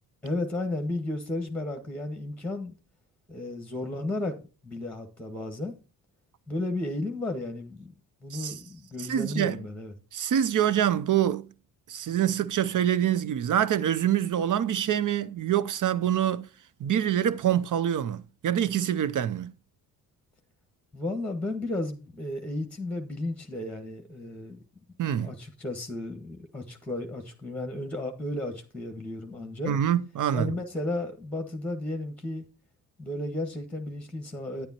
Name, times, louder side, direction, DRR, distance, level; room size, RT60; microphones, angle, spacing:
voice 1, 0.2-2.7 3.3-4.4 4.6-5.7 6.5-7.9 8.2-9.9 20.9-24.6 25.2-29.8 30.3-32.5 33.0-34.7, left 2 dB, 5° left, 1.6 m, -33 dB
voice 2, 9.0-9.6 10.1-11.5 11.9-16.5 16.8-19.5 25.0-25.3 29.6-30.5, right 10 dB, 50° right, 0.7 m, -26 dB
9.8 x 8.8 x 2.9 m
cardioid pair, 70°, 40 cm